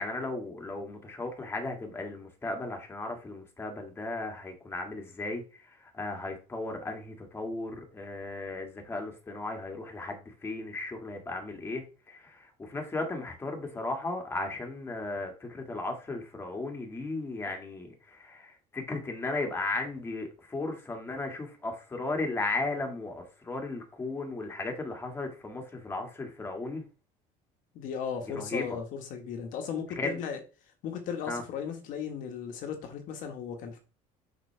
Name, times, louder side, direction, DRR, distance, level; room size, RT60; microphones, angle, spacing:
voice 1, 0.0-5.4 5.9-26.8 28.4-28.8 30.0-30.2 31.3-31.4, left 2 dB, 15° left, 2 dB, 2.0 m, -35 dB
voice 2, 27.7-30.4 30.8-33.8, left 7 dB, 65° left, 4 dB, 1.5 m, -36 dB
6.5 x 6.1 x 3.4 m, 0.34 s
cardioid pair, 135°, 15 cm